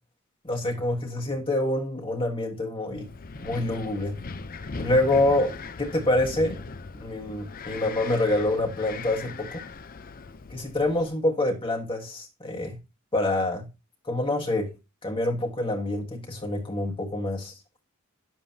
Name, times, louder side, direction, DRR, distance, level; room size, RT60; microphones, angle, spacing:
voice 1, 0.4-3.1 3.4-4.2 4.7-6.6 6.9-9.6 10.5-12.8 13.1-13.7 14.1-14.7 15.0-17.5, left 2 dB, 25° left, 1.4 m, -26 dB
Wind, 3.0-11.1, left 4 dB, 45° left, 0.6 m, -39 dB
9.8 x 7.5 x 2.8 m
head